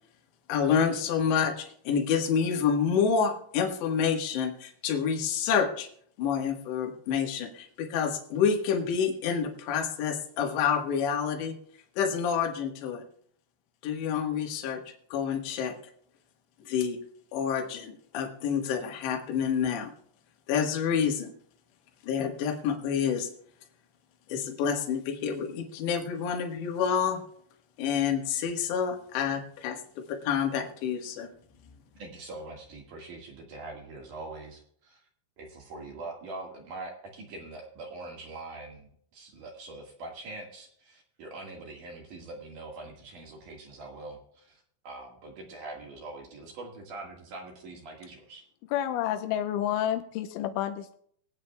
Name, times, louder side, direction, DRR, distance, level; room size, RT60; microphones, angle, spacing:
voice 1, 0.5-5.9 6.2-11.6 12.0-13.0 13.8-14.8 15.1-15.7 16.7-17.0 17.3-19.9 20.5-21.3 22.0-23.3 24.3-27.2 27.8-31.3, left 7 dB, 70° left, 3 dB, 3.6 m, -28 dB
voice 2, 32.0-35.1 35.4-48.4, right 2 dB, 55° right, 1 dB, 2.7 m, -43 dB
voice 3, 48.7-51.0, left 11 dB, 90° left, 6 dB, 3.1 m, -29 dB
24.0 x 8.9 x 2.3 m, 0.63 s
omnidirectional pair, 5.5 m